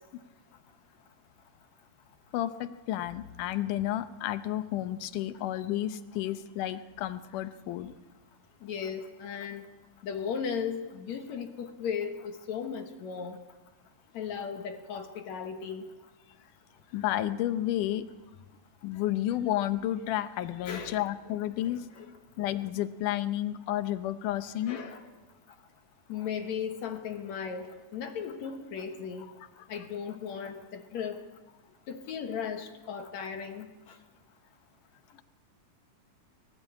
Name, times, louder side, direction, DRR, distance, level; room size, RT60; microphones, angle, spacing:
voice 1, 2.3-7.9 16.9-18.1 18.8-21.9 22.4-24.8 35.1-35.2, left 13 dB, 85° left, 12 dB, 2.5 m, -31 dB
voice 2, 8.6-9.7 10.0-13.4 14.1-15.8 20.7-21.1 21.6-22.1 24.7-25.0 26.1-29.3 29.7-31.2 31.9-34.0, left 7 dB, 65° left, 6 dB, 2.5 m, -36 dB
22.5 x 17.5 x 8.5 m, 1.2 s
omnidirectional pair, 3.6 m